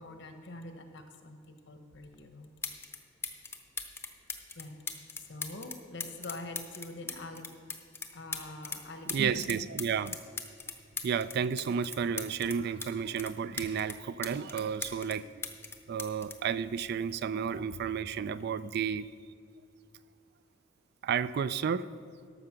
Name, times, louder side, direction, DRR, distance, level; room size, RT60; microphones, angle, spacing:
voice 1, 0.0-2.5 4.5-4.8 5.2-7.5 8.1-9.2, left 2 dB, 60° left, 6 dB, 1.1 m, -45 dB
sound 1, 2.1-2.2 2.6-3.0 3.2-8.8 9.1-12.9 13.2-15.2 15.4-17.3 18.2-18.4, left 4 dB, 10° left, 0.6 m, -39 dB
voice 2, 9.0-10.2 11.0-15.4 15.9-19.1 21.0-21.9, right 7 dB, 50° right, 16 dB, 0.3 m, -32 dB
12.5 x 6.7 x 5.9 m, 2.3 s
head